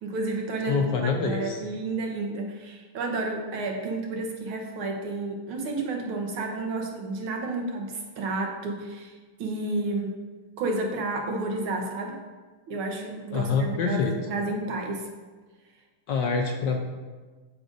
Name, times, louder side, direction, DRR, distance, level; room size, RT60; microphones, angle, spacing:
voice 1, 0.0-9.1 9.4-10.2 10.6-12.2 12.7-15.1, right 2 dB, 80° right, 2 dB, 1.8 m, -31 dB
voice 2, 0.7-1.6 13.3-14.1 16.1-16.8, left 5 dB, 70° left, 2 dB, 1.1 m, -26 dB
14.0 x 5.1 x 2.6 m, 1.3 s
omnidirectional pair, 2.3 m